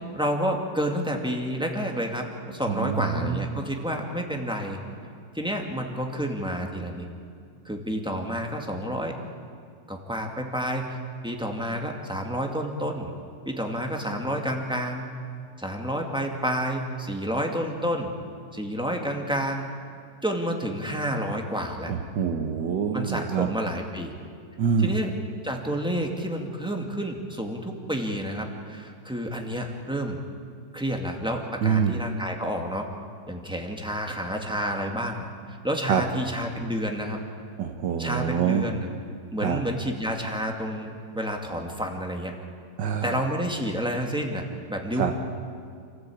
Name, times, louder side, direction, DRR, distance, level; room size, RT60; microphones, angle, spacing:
voice 1, 0.0-4.8 5.3-7.1 7.6-9.1 9.9-11.0 11.2-13.1 13.5-15.1 15.6-18.1 18.5-19.7 20.2-21.9 22.9-24.1 24.8-25.1 25.4-30.2 30.7-32.9 33.3-37.2 38.0-38.9 39.3-42.3 43.0-45.1, equal, 5° right, 2 dB, 2.2 m, -29 dB
voice 2, 2.7-3.5 21.9-23.5 24.6-24.9 31.6-32.0 35.9-36.0 37.6-38.7 39.4-39.6 42.8-43.2 45.0-45.1, right 7 dB, 85° right, 4 dB, 1.8 m, -25 dB
27.5 x 15.0 x 8.7 m, 2.2 s
omnidirectional pair, 1.9 m